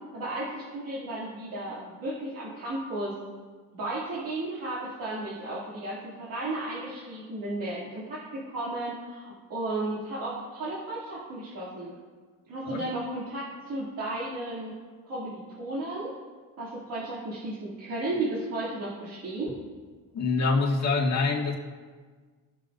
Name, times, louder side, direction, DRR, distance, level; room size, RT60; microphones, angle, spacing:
voice 1, 0.1-3.2 3.7-12.0 12.5-14.7 15.0-16.1 16.6-19.6, right 2 dB, 70° right, -9 dB, 2.8 m, -34 dB
voice 2, 20.1-21.6, left 3 dB, 50° left, -2 dB, 2.0 m, -25 dB
18.5 x 6.7 x 2.6 m, 1.5 s
cardioid pair, 100°, 34 cm